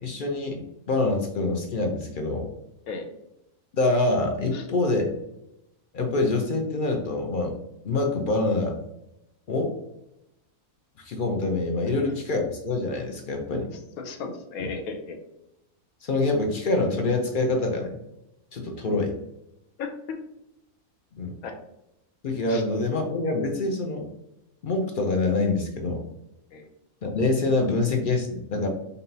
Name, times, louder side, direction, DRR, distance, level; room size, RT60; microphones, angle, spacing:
voice 1, 0.0-2.5 3.7-5.1 5.9-7.6 7.8-8.8 9.5-9.7 11.0-13.7 14.6-14.7 16.0-18.0 18.5-19.2 21.2-21.4 22.2-24.1 24.6-26.1 27.0-28.7, left 2 dB, 60° left, 3 dB, 0.5 m, -25 dB
voice 2, 14.0-15.2 19.8-20.2 21.4-21.6 22.5-22.6 26.5-26.7, left 4 dB, 85° left, 5 dB, 1.2 m, -35 dB
5.2 x 2.7 x 2.7 m, 0.84 s
omnidirectional pair, 1.5 m